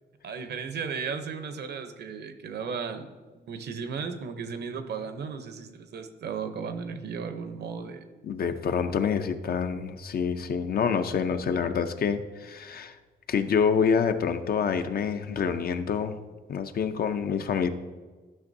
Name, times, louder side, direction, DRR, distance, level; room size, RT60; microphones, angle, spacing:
voice 1, 0.2-8.1, right 6 dB, 65° right, 9 dB, 0.7 m, -35 dB
voice 2, 8.2-12.9 13.3-16.2 16.5-17.7, left 6 dB, 55° left, 9 dB, 0.5 m, -27 dB
12.5 x 6.0 x 2.7 m, 1.4 s
cardioid pair, 120°, 19 cm